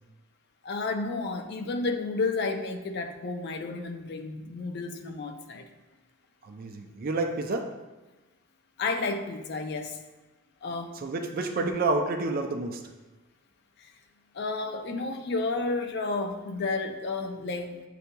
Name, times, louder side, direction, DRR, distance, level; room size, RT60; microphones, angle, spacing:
voice 1, 0.6-5.7 8.8-10.0 10.6-10.9 11.6-11.7 14.3-17.8, left 3 dB, 50° left, 6 dB, 0.4 m, -31 dB
voice 2, 6.4-7.7 11.0-12.8, right 3 dB, 45° right, 5 dB, 0.4 m, -29 dB
7.8 x 2.8 x 2.2 m, 1.2 s
head